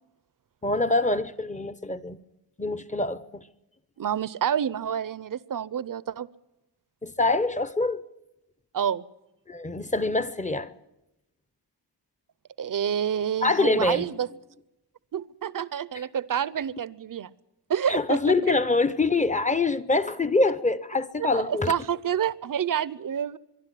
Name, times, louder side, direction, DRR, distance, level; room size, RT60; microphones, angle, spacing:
voice 1, 0.6-2.2 2.6-3.4 7.0-8.0 9.5-10.7 13.4-14.1 17.9-21.7, left 3 dB, 15° left, 0.7 m, -25 dB
voice 2, 4.0-6.3 8.7-9.0 12.6-14.3 15.1-17.3 17.7-18.5 21.2-23.4, right 8 dB, 50° right, 0.7 m, -28 dB
23.5 x 12.0 x 9.9 m
wide cardioid pair, 135°, 43 cm